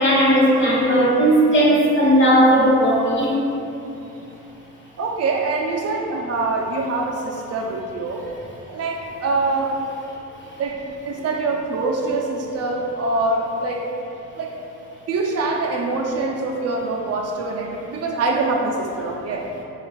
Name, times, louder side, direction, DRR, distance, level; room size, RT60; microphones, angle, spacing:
voice 1, 0.0-3.3, equal, 40° left, -5 dB, 1.2 m, -16 dB
voice 2, 5.0-8.3 8.7-9.8 10.6-14.0 14.3-14.6 15.1-19.5, right 3 dB, 55° right, 1 dB, 0.4 m, -24 dB
6.7 x 2.4 x 2.2 m, 2.8 s
cardioid pair, 90°, 30 cm